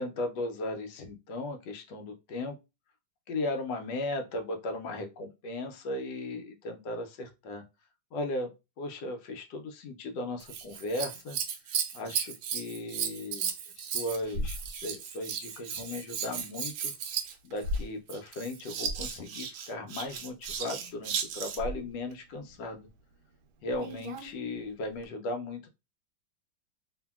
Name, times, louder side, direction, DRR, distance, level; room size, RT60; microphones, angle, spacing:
voice 1, 0.0-2.6 3.3-7.6 8.1-8.5 8.8-11.4 11.7-16.9 17.4-22.9 23.6-25.7, left 2 dB, 75° left, 5 dB, 1.1 m, -36 dB
Scissors, 10.4-21.8 23.7-24.3 25.0-25.1, right 6 dB, 75° right, 1.2 m, -35 dB
2.8 x 2.6 x 2.2 m, 0.26 s
omnidirectional pair, 2.1 m